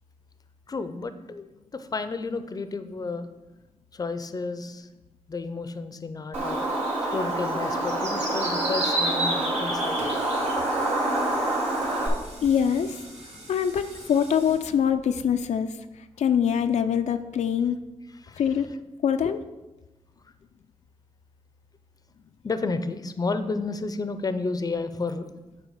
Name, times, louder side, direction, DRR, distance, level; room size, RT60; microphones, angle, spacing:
voice 1, 0.7-3.3 3.9-4.9 5.3-6.7 7.1-10.0 18.2-18.4 22.4-25.3, left 3 dB, 35° left, 11 dB, 0.5 m, -31 dB
Bird, 6.3-12.1, right 1 dB, 85° right, 2.2 m, -26 dB
sound 1, 9.7-15.7 16.2-16.3, right 1 dB, 65° right, 2.8 m, -45 dB
voice 2, 12.4-13.0 13.5-15.7 16.2-17.8 18.4-18.7 19.0-19.4, left 8 dB, 80° left, 8 dB, 0.4 m, -24 dB
8.4 x 3.4 x 6.4 m, 1.1 s
wide cardioid pair, 90°, 12 cm